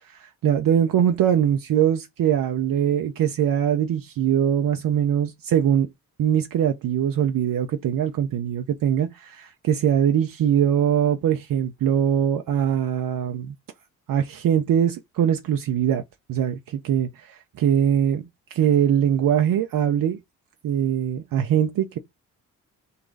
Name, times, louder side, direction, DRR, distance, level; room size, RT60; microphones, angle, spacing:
voice 1, 0.4-5.9 6.2-13.5 14.1-16.0 16.3-20.2 20.6-22.0, right 9 dB, 55° right, 0.7 m, -22 dB
4.0 x 2.3 x 3.9 m
hypercardioid pair, 45°, 41 cm